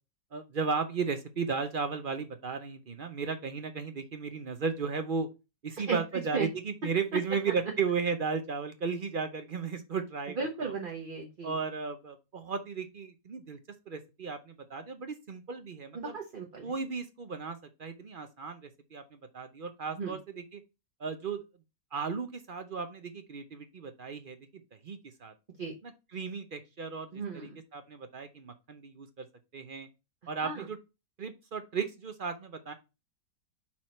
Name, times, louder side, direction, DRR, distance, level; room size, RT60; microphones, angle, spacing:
voice 1, 0.3-5.3 5.6-10.7 11.4-13.6 13.9-16.1 16.6-20.6 21.0-21.4 21.9-24.4 24.8-25.3 25.8-29.3 29.5-29.9 30.3-30.8 31.2-32.7, right 5 dB, 55° right, 8 dB, 0.5 m, -35 dB
voice 2, 10.4-11.6 15.9-16.7 20.0-20.2 25.6-25.7 27.1-27.6 30.4-30.7, right 5 dB, 35° right, 1 dB, 1.0 m, -35 dB
5.7 x 4.6 x 4.3 m, 0.26 s
omnidirectional pair, 1.9 m